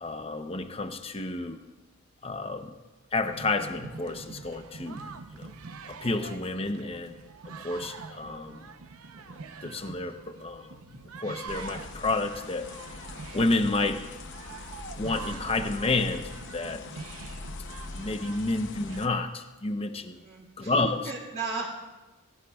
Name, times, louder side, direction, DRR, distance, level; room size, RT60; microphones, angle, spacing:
voice 1, 0.0-1.6 2.2-2.7 3.1-5.1 5.3-5.5 5.9-7.1 7.6-8.6 9.6-12.7 13.3-14.0 14.9-16.8 17.9-20.2 20.6-21.1, left 2 dB, 25° left, 8 dB, 0.7 m, -30 dB
sound 1, 3.2-19.0, right 4 dB, 85° right, 0.7 m, -45 dB
sound 2, 11.5-19.1, left 3 dB, 55° left, 0.8 m, -42 dB
voice 2, 20.2-20.7 21.0-21.7, right 4 dB, 45° right, -7 dB, 2.4 m, -35 dB
18.5 x 15.5 x 2.4 m, 1.1 s
head